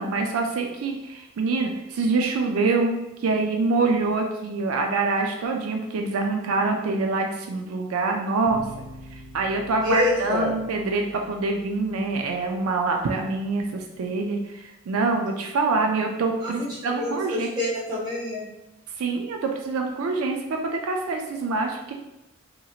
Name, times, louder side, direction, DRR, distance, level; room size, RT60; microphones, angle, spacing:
voice 1, 0.0-8.6 9.3-17.5 19.0-21.9, right 3 dB, 85° right, 2 dB, 0.4 m, -25 dB
sound 1, 8.5-13.6, equal, 65° left, 0.5 m, -46 dB
voice 2, 9.8-10.5 16.4-18.5, left 2 dB, 20° right, -7 dB, 0.9 m, -27 dB
3.0 x 2.8 x 2.3 m, 0.94 s
head